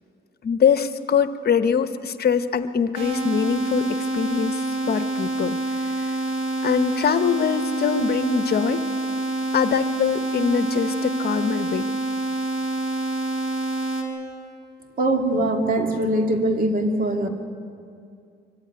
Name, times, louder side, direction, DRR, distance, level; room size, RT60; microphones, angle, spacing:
voice 1, 0.4-3.9 4.1-5.6 6.6-8.8 9.5-11.8, left 7 dB, 55° left, 11 dB, 1.0 m, -23 dB
sound 1, 2.9-14.0, right 2 dB, 80° right, 3.3 m, -27 dB
voice 2, 15.0-17.3, right 1 dB, 45° right, 4 dB, 2.6 m, -22 dB
24.0 x 15.0 x 9.6 m, 2.4 s
cardioid pair, 90°, 20 cm